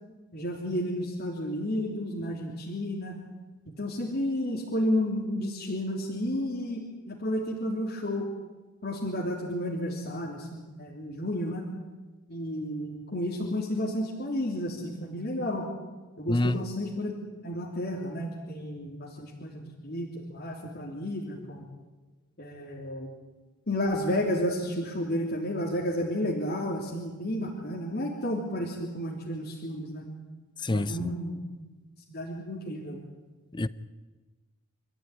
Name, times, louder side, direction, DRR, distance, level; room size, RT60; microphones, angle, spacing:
voice 1, 0.3-3.2 3.8-8.3 8.8-11.7 12.3-15.7 16.2-17.1 17.4-21.6 22.4-23.1 23.7-30.1 30.7-31.4 32.1-33.0, left 1 dB, 50° left, 3.4 m, -32 dB
voice 2, 16.3-16.7 30.6-31.2 33.5-33.7, left 1 dB, 20° left, 0.7 m, -27 dB
26.5 x 14.5 x 10.0 m
head